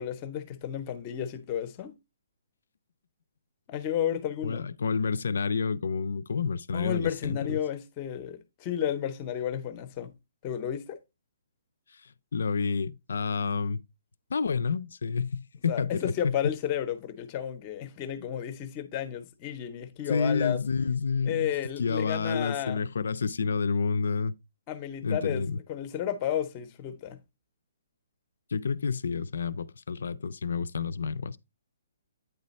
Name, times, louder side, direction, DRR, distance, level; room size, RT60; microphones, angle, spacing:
voice 1, 0.0-1.9 3.7-4.7 6.7-10.1 10.4-11.0 15.7-20.6 21.2-22.8 24.7-27.2, left 10 dB, 20° left, 0.6 m, -32 dB
voice 2, 4.4-7.6 12.3-13.8 14.3-16.4 20.1-21.5 21.8-24.3 25.0-25.6 28.5-31.4, left 5 dB, 70° left, 0.4 m, -29 dB
8.9 x 3.2 x 4.1 m
hypercardioid pair, 175°, 0 cm